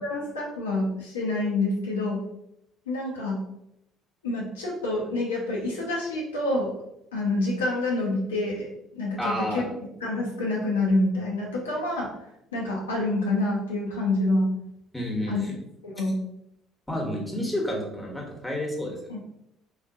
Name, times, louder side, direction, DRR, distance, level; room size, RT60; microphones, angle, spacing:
voice 1, 0.0-2.2 2.9-3.4 4.2-6.8 7.1-9.7 10.0-12.1 12.5-14.5 15.3-15.4 15.8-16.2 19.1-19.2, left 2 dB, 80° left, -3 dB, 0.7 m, -27 dB
voice 2, 9.2-9.7 14.9-15.6 16.9-19.2, left 1 dB, 10° left, -1 dB, 1.1 m, -30 dB
3.8 x 2.4 x 2.6 m, 0.80 s
figure-of-eight pair, 55°, 0 cm